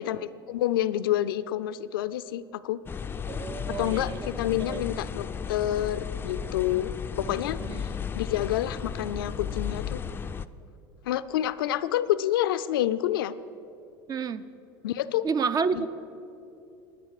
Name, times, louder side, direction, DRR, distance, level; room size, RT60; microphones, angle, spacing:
voice 1, 0.0-2.8 3.8-6.9 7.2-10.0 11.0-13.3 14.8-15.3 15.7-15.9, left 12 dB, 90° left, 15 dB, 0.4 m, -28 dB
sound 1, 2.9-10.5, left 7 dB, 20° left, 0.4 m, -34 dB
voice 2, 3.3-4.3 4.6-4.8 7.6-7.9 14.1-14.4 15.2-15.9, right 5 dB, 35° right, 14 dB, 0.5 m, -30 dB
11.0 x 9.9 x 6.5 m, 2.6 s
supercardioid pair, 95°, 11 cm